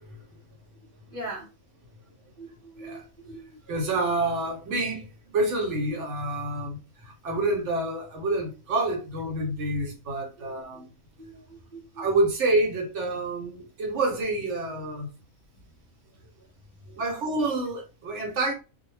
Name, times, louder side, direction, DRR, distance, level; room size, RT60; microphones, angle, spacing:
voice 1, 1.1-1.5 2.4-3.6 10.4-10.8 11.2-12.1 16.8-17.0, right 2 dB, 20° left, 0.6 m, -42 dB
voice 2, 3.7-10.9 12.0-15.1 17.0-18.5, right 2 dB, 65° right, 1.0 m, -28 dB
2.3 x 2.1 x 3.1 m
omnidirectional pair, 1.4 m